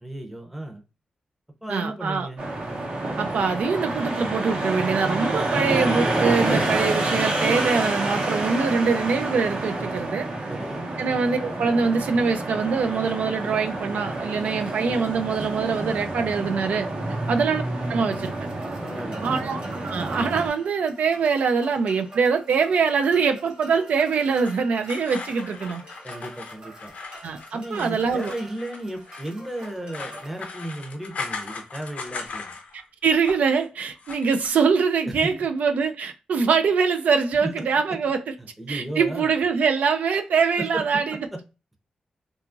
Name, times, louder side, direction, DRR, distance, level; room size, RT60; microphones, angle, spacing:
voice 1, 0.0-0.8 1.6-2.4 5.2-5.9 10.5-10.9 17.1-17.3 18.8-19.5 26.0-26.9 27.5-32.6 35.0-35.3 37.4-37.7 38.4-39.3 40.6-41.0 41.3-41.4, right 1 dB, 5° right, 0.6 m, -35 dB
voice 2, 1.7-2.3 3.2-10.3 11.0-16.9 17.3-17.6 17.9-18.3 19.2-25.8 27.2-28.3 32.7-38.2 38.7-41.2, right 5 dB, 80° right, 0.3 m, -23 dB
sound 1, 2.4-20.5, right 2 dB, 60° right, 0.8 m, -28 dB
sound 2, 18.1-30.5, right 1 dB, 40° right, 1.1 m, -46 dB
sound 3, 24.4-32.8 33.1-33.6 33.9-34.5, left 4 dB, 65° left, 0.6 m, -38 dB
2.8 x 2.3 x 2.4 m
cardioid pair, 95°, 3 cm